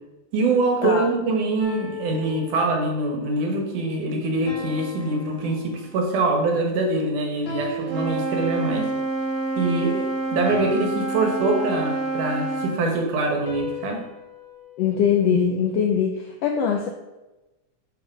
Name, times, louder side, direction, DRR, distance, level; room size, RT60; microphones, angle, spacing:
voice 1, 0.3-8.9 9.6-14.0, right 2 dB, 90° right, 2 dB, 2.9 m, -24 dB
sound 1, 1.6-3.1 4.5-6.3 7.5-8.9 10.5-11.9 13.5-15.7, left 2 dB, 50° left, 1.7 m, -37 dB
Wind instrument woodwind instrument, 7.8-12.8, right 2 dB, 55° right, 3.0 m, -27 dB
voice 2, 14.8-16.9, left 7 dB, 80° left, 4 dB, 1.4 m, -22 dB
6.3 x 5.8 x 5.3 m, 1.0 s
omnidirectional pair, 3.5 m